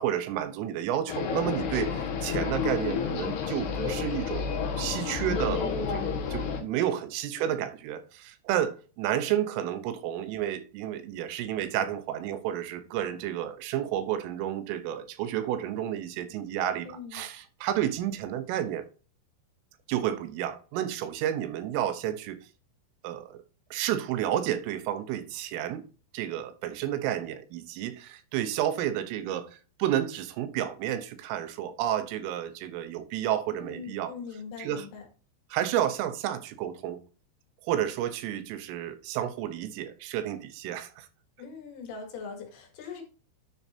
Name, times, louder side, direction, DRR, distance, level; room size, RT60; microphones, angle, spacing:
voice 1, 0.0-18.9 19.9-22.4 23.0-23.4 23.7-25.8 26.1-29.5 29.8-34.1 34.6-34.9 35.5-37.0 37.6-41.1, right 11 dB, 90° right, 3.5 m, -31 dB
sound 1, 1.1-6.6, left 6 dB, 65° left, 3.2 m, -30 dB
voice 2, 16.9-17.3 33.6-35.1 41.4-43.0, left 6 dB, 90° left, 4.6 m, -42 dB
10.5 x 7.1 x 2.7 m
omnidirectional pair, 5.6 m